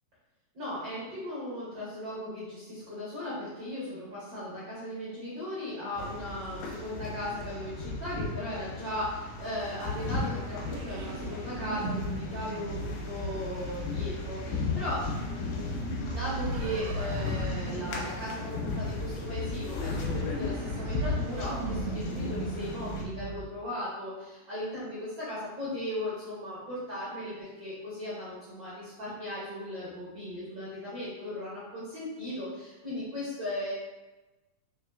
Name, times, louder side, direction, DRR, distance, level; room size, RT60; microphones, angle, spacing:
voice 1, 0.5-33.7, left 1 dB, 70° right, -10 dB, 1.0 m, -37 dB
sound 1, 6.0-23.0, left 3 dB, 85° left, 2.5 m, -35 dB
sound 2, 9.5-23.4, right 4 dB, 90° right, 2.3 m, -39 dB
6.3 x 2.7 x 2.3 m, 1.1 s
omnidirectional pair, 3.9 m